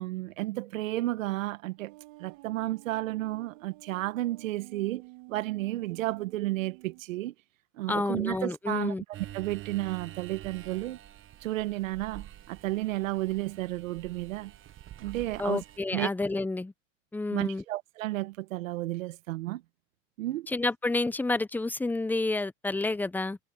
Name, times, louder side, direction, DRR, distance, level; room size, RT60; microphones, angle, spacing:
voice 1, 0.0-1.9 2.2-5.0 5.3-7.3 7.8-11.0 11.4-14.5 15.0-15.6 15.9-16.1 17.3-19.6 20.2-20.5, right 17 dB, 85° right, 1.5 m, -32 dB
sound 1, 1.8-7.0, right 23 dB, 65° right, 2.2 m, -51 dB
voice 2, 7.9-9.0 15.4-16.7 17.1-17.6 20.5-23.4, left 2 dB, 5° left, 0.6 m, -29 dB
sound 2, 9.1-15.8, right 12 dB, 30° right, 1.2 m, -47 dB
supercardioid pair, 120°, 38 cm